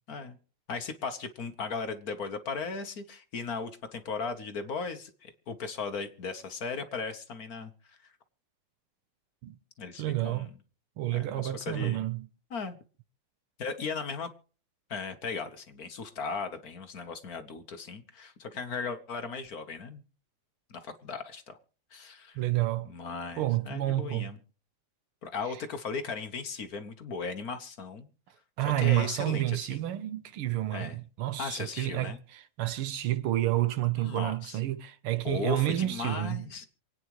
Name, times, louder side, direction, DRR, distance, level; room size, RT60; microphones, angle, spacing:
voice 1, 0.7-8.1 9.8-10.5 11.1-12.0 12.5-12.8 13.6-14.3 14.9-20.0 20.7-21.6 21.9-22.4 22.8-24.4 25.2-28.1 28.8-29.8 30.7-31.0 31.4-32.2 33.9-34.6 35.2-36.7, left 4 dB, 50° left, 1.5 m, -37 dB
voice 2, 10.0-10.5 11.0-12.3 22.4-22.9 23.4-24.3 28.6-36.5, right 15 dB, 90° right, 1.8 m, -29 dB
27.5 x 9.3 x 3.1 m
omnidirectional pair, 2.3 m